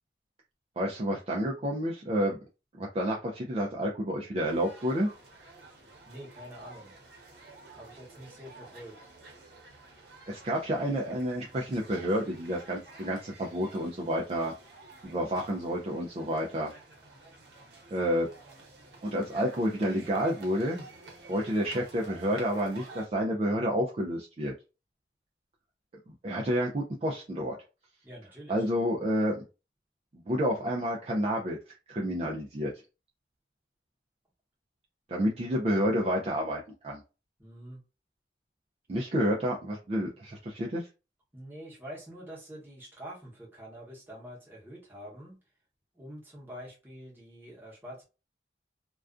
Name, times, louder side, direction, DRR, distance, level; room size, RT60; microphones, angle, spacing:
voice 1, 0.8-2.4 2.8-5.1 10.3-14.5 15.0-16.7 17.9-18.3 19.0-20.8 21.3-24.5 26.1-27.6 28.5-29.4 30.1-31.6 31.9-32.7 35.1-37.0 38.9-40.9, equal, 35° right, 0.3 m, -29 dB
sound 1, 4.4-23.1, right 3 dB, 75° right, 0.8 m, -51 dB
voice 2, 6.1-7.0 7.8-9.1 28.0-28.7 37.4-37.8 41.3-45.4 45.9-48.0, equal, 10° right, 0.9 m, -46 dB
2.4 x 2.2 x 2.4 m
head